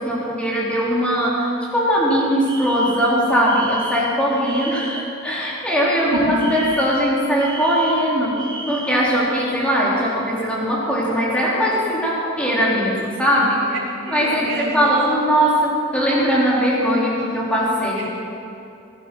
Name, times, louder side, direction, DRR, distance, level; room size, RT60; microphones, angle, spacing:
voice 1, 0.0-13.7 14.1-18.1, equal, 5° left, -6 dB, 3.8 m, -20 dB
Alarm, 2.5-5.2 6.4-9.1, right 2 dB, 25° right, 2.0 m, -34 dB
voice 2, 6.1-6.6 14.0-15.0 18.0-18.1, right 1 dB, 85° right, -4 dB, 3.5 m, -27 dB
20.5 x 11.5 x 6.2 m, 2.8 s
head